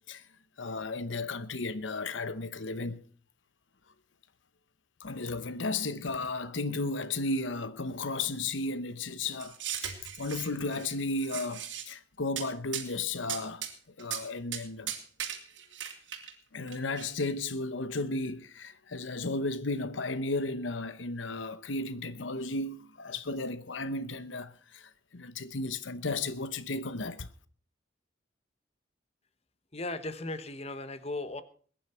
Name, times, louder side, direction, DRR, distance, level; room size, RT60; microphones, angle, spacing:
voice 1, 0.6-3.0 5.0-9.6 9.8-13.7 14.0-14.9 16.5-27.3, left 3 dB, 80° left, 0.9 m, -34 dB
sound 1, 9.4-10.9 11.2-11.8 12.4-12.5 12.7-12.9 13.3-13.7 14.0-14.2 14.5-14.6 14.9-16.3 16.7-17.1, right 10 dB, 75° right, 2.9 m, -37 dB
voice 2, 29.7-31.4, left 2 dB, 35° left, 1.1 m, -37 dB
21.5 x 10.0 x 4.4 m
head